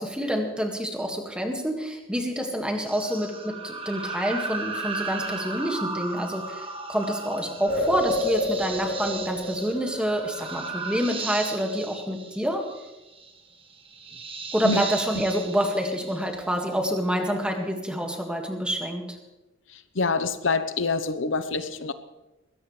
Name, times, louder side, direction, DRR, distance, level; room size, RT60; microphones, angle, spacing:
voice 1, 0.0-12.7 14.5-19.2, equal, 5° right, 2 dB, 1.9 m, -27 dB
sound 1, 2.9-16.7, right 3 dB, 25° right, 1.5 m, -36 dB
sound 2, 7.7-11.2, left 1 dB, 35° left, 3.6 m, -30 dB
voice 2, 20.0-21.9, left 4 dB, 65° left, 10 dB, 1.0 m, -26 dB
21.0 x 17.0 x 3.3 m, 1.0 s
head